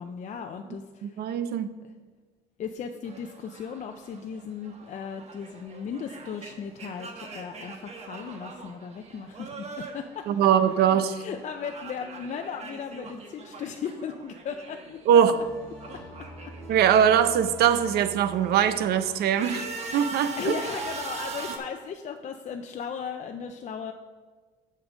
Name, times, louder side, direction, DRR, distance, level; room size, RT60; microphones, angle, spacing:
voice 1, 0.0-1.3 2.6-9.5 9.8-10.3 10.8-15.0 20.4-23.9, left 6 dB, 45° left, 5 dB, 0.5 m, -36 dB
voice 2, 1.0-1.7 10.3-11.1 15.1-15.3 16.7-20.6, right 9 dB, 70° right, 11 dB, 0.7 m, -22 dB
sound 1, 3.1-11.1 11.3-15.1 15.4-18.0 18.6-21.6, right 3 dB, 40° right, 1.3 m, -41 dB
sound 2, 15.3-20.7, right 1 dB, 5° left, 2.2 m, -46 dB
7.1 x 6.6 x 5.1 m, 1.4 s
cardioid pair, 110°, 17 cm